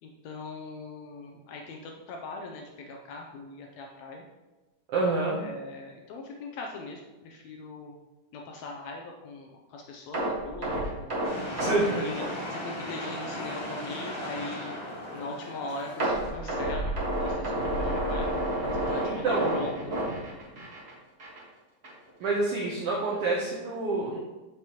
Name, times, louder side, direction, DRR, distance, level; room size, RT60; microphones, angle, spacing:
voice 1, 0.0-4.2 5.4-7.9 8.3-11.4 11.8-14.7 15.1-18.4 18.7-20.0, left 3 dB, 85° left, 1 dB, 1.6 m, -40 dB
voice 2, 4.9-5.4 11.5-12.0 19.0-19.5 22.2-24.2, right 3 dB, 85° right, -2 dB, 1.3 m, -27 dB
sound 1, 10.1-13.2 13.5-13.7 14.1-14.2 16.0-20.9 21.2-21.4 21.8-21.9, right 1 dB, 55° right, 0.7 m, -30 dB
sound 2, 11.2-16.3, left 1 dB, 40° left, 2.6 m, -37 dB
8.0 x 5.9 x 2.9 m, 1.2 s
omnidirectional pair, 3.8 m